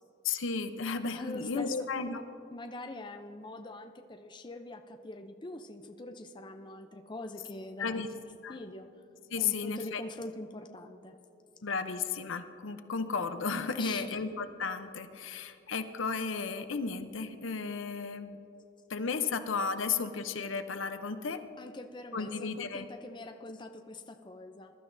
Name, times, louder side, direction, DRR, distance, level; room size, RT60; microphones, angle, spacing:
voice 1, 0.2-2.2 7.8-8.1 8.4-8.6 9.3-10.0 11.6-18.4 18.9-21.4 22.1-22.9, left 5 dB, 75° left, 9 dB, 0.7 m, -34 dB
voice 2, 1.1-1.9 2.5-8.0 8.5-8.9 9.4-11.1 13.8-14.2 21.6-24.7, left 2 dB, 25° left, 5 dB, 0.5 m, -43 dB
21.0 x 12.0 x 2.6 m, 2.7 s
head